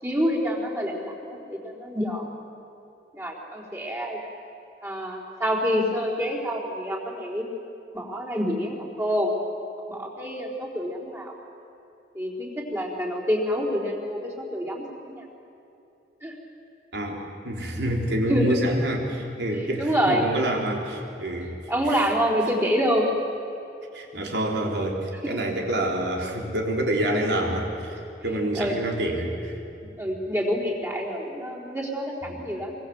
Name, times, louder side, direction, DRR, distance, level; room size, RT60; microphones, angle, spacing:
voice 1, 0.0-2.3 3.1-4.2 4.8-7.5 7.9-9.3 9.9-11.3 12.1-15.2 16.2-16.3 18.3-18.6 19.8-20.3 21.7-23.1 28.6-28.7 30.0-32.8, equal, 15° right, -4 dB, 4.1 m, -27 dB
voice 2, 16.9-22.0 23.9-30.0 32.3-32.4, right 1 dB, 70° right, 0 dB, 3.8 m, -27 dB
24.0 x 23.5 x 8.0 m, 2.8 s
head